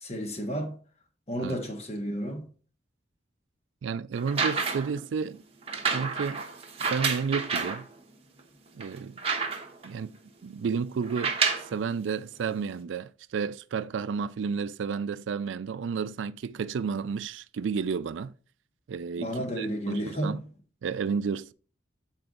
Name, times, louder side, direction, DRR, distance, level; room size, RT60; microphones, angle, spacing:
voice 1, 0.0-0.8 1.3-2.4 19.2-20.4, equal, 35° left, 1.4 m, -32 dB
voice 2, 3.8-5.4 5.9-6.4 6.9-7.9 8.8-9.2 9.8-10.1 10.4-11.4 11.7-18.3 18.9-20.4 20.8-21.5, right 5 dB, 85° right, 0.4 m, -31 dB
sound 1, 4.2-5.0 5.7-7.8 8.4-8.5 8.8-9.9 11.0-11.7 12.7-12.8, right 5 dB, 30° right, 1.0 m, -29 dB
7.8 x 4.5 x 3.8 m
head